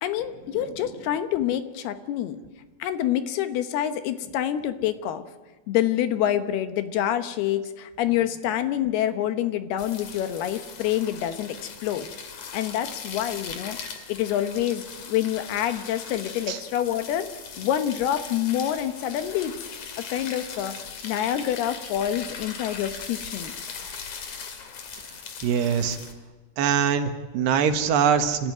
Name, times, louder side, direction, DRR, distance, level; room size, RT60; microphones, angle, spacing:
voice 1, 0.0-2.4 2.8-5.2 5.7-12.1 12.5-13.8 14.1-17.3 17.6-19.5 20.0-20.8 21.0-23.5, left 11 dB, 75° left, 9 dB, 2.8 m, -27 dB
sound 1, 9.8-26.1, left 6 dB, 50° left, 3.1 m, -39 dB
voice 2, 25.4-26.0 26.6-28.5, right 7 dB, 75° right, 7 dB, 3.4 m, -23 dB
28.0 x 14.5 x 9.3 m, 1.3 s
omnidirectional pair, 4.9 m